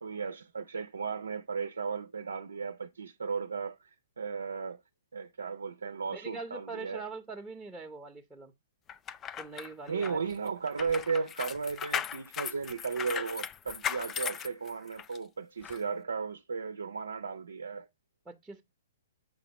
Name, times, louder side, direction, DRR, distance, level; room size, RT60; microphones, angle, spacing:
voice 1, 0.0-4.8 5.1-7.0 9.9-17.9, right 5 dB, 85° right, 0.5 m, -35 dB
voice 2, 6.1-8.5 9.4-10.3 18.3-18.6, right 3 dB, 10° right, 0.8 m, -43 dB
sound 1, 8.9-15.2 15.6-15.8, left 8 dB, 20° left, 0.3 m, -37 dB
7.1 x 5.0 x 2.9 m
hypercardioid pair, 125°, 0 cm